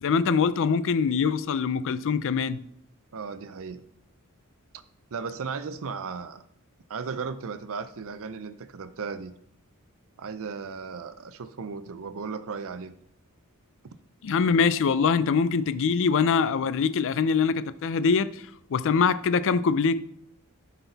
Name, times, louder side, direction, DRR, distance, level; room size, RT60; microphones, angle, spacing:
voice 1, 0.0-2.6 14.2-18.4 18.7-20.0, left 5 dB, 60° left, 0.4 m, -23 dB
voice 2, 3.1-3.8 5.1-6.4 6.9-9.3 10.2-12.9, right 5 dB, 65° right, 0.5 m, -36 dB
12.0 x 4.1 x 4.0 m
head